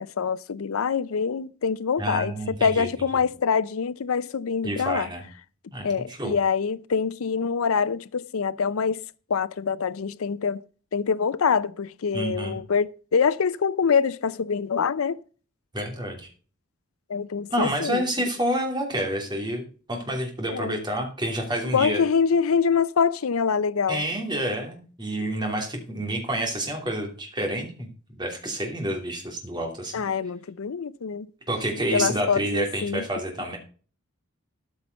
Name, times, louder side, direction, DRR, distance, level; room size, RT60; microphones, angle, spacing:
voice 1, 0.0-5.1 5.8-9.0 9.3-10.6 10.9-15.2 17.1-18.1 20.5-20.8 21.7-24.0 29.9-31.3 31.9-33.0, left 6 dB, 80° left, 0.5 m, -25 dB
voice 2, 2.0-2.9 4.6-5.2 5.7-6.4 12.1-12.6 15.7-16.3 17.5-22.0 23.9-27.9 28.1-30.0 31.5-33.6, right 1 dB, 20° right, 2.8 m, -29 dB
13.5 x 5.7 x 5.2 m
head